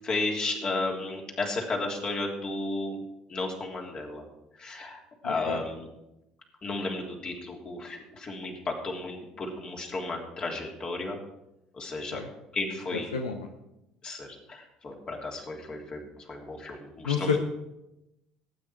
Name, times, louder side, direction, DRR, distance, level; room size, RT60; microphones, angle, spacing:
voice 1, 0.0-3.0 3.3-4.3 4.6-5.9 6.6-11.2 11.7-12.2 12.5-13.1 14.0-17.4, left 2 dB, 35° left, 0 dB, 3.3 m, -33 dB
voice 2, 5.2-5.6 12.1-12.3 13.1-13.5 17.0-17.4, left 6 dB, 80° left, 4 dB, 0.9 m, -29 dB
18.5 x 9.3 x 4.6 m, 0.90 s
figure-of-eight pair, 60°, 3 cm